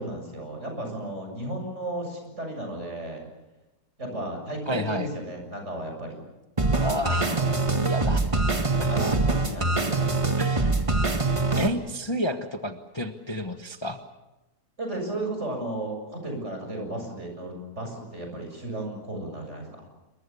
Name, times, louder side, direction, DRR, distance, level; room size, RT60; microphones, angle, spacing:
voice 1, 0.0-3.2 4.0-6.2 7.0-7.9 8.9-10.5 14.8-19.9, right 1 dB, 50° right, 3 dB, 7.5 m, -34 dB
voice 2, 4.7-5.1 6.8-7.4 7.8-8.2 8.8-8.9 10.4-10.7 11.6-14.0, equal, 20° left, 6 dB, 1.2 m, -30 dB
sound 1, 6.6-11.7, right 3 dB, 20° right, 1.8 m, -24 dB
28.0 x 23.0 x 7.1 m, 1.0 s
omnidirectional pair, 1.6 m